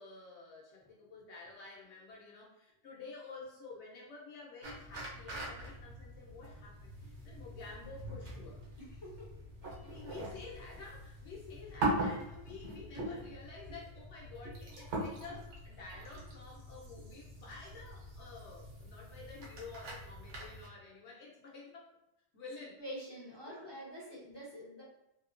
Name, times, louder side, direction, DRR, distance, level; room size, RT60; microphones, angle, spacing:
voice 1, 0.0-8.6 9.8-21.9 22.3-22.8 23.5-23.7, left 4 dB, 80° left, -3 dB, 1.0 m, -50 dB
sound 1, 4.6-20.7, right 1 dB, 85° right, 1.0 m, -42 dB
voice 2, 22.8-24.8, equal, 40° left, -6 dB, 0.4 m, -46 dB
2.8 x 2.1 x 2.5 m, 0.87 s
omnidirectional pair, 1.1 m